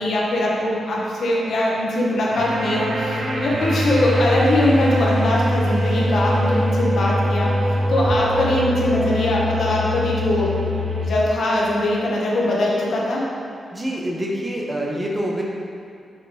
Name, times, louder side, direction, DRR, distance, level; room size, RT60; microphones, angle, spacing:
voice 1, 0.0-7.5 7.9-10.5 11.0-13.2, left 1 dB, 60° left, -4 dB, 1.2 m, -21 dB
sound 1, 2.1-8.4, right 1 dB, 35° right, 1.5 m, -37 dB
sound 2, 2.3-11.1, left 1 dB, 85° right, 1.1 m, -23 dB
voice 2, 13.7-15.4, equal, 15° right, -2 dB, 0.9 m, -26 dB
6.0 x 5.5 x 4.3 m, 2.4 s
wide cardioid pair, 165°, 0 cm